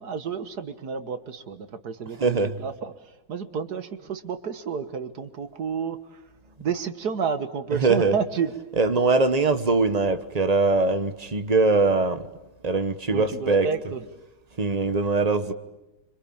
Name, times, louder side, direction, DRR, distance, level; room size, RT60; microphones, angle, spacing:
voice 1, 0.0-6.2 6.6-8.5 13.1-14.0, right 6 dB, 65° right, 1.9 m, -31 dB
voice 2, 2.2-2.6 7.8-8.1 8.8-12.3 12.6-13.7 14.6-15.5, right 3 dB, 25° right, 1.1 m, -22 dB
26.0 x 26.0 x 8.8 m
omnidirectional pair, 1.9 m